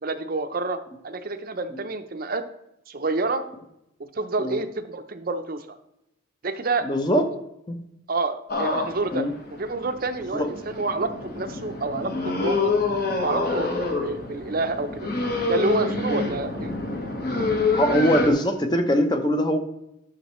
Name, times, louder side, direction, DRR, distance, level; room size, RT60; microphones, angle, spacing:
voice 1, 0.0-0.8 1.0-2.4 2.9-3.4 4.1-5.8 6.4-6.9 8.1-9.2 9.6-12.7 13.2-15.1 15.5-16.7, right 3 dB, 45° right, 8 dB, 0.6 m, -28 dB
voice 2, 6.8-7.3 7.7-7.8 9.1-9.3 10.3-10.5 16.1-16.2 17.7-19.6, equal, 20° left, 6 dB, 0.8 m, -22 dB
sound 1, 8.5-18.3, left 3 dB, 45° left, 1.3 m, -27 dB
10.0 x 6.4 x 3.1 m, 0.82 s
head